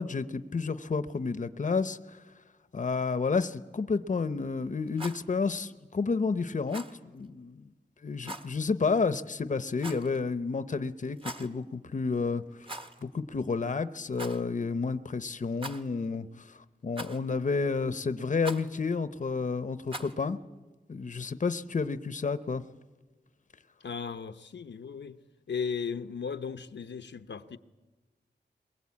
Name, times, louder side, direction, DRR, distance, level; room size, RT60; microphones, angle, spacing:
voice 1, 0.0-2.2 2.7-7.6 8.0-12.4 13.0-16.3 16.8-20.4 20.9-22.6, left 4 dB, 45° left, 0.8 m, -30 dB
Rattle, 4.8-5.2 6.7-7.0 8.2-8.5 9.8-10.2 11.1-11.5 12.6-13.0 13.3-13.4 14.1-14.4 15.6-16.1 17.0-17.4 18.4-18.7 19.9-20.2, right 1 dB, 30° right, 1.4 m, -41 dB
voice 2, 23.8-25.2 25.5-27.6, left 6 dB, 80° left, 0.8 m, -36 dB
22.0 x 21.5 x 8.5 m
wide cardioid pair, 90°, 18 cm